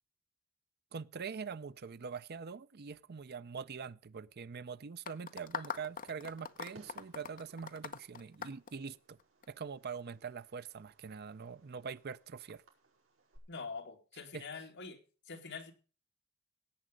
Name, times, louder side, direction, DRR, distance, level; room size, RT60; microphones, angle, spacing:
voice 1, 0.9-9.2 9.5-12.6 14.3-14.4, right 5 dB, 50° right, 0.6 m, -44 dB
sound 1, 5.1-9.5, left 6 dB, 40° left, 0.9 m, -42 dB
Fireworks, 5.4-13.4, right 2 dB, 70° right, 5.2 m, -66 dB
voice 2, 13.5-15.0 15.3-15.7, left 4 dB, 60° left, 2.5 m, -44 dB
17.5 x 8.8 x 5.1 m
head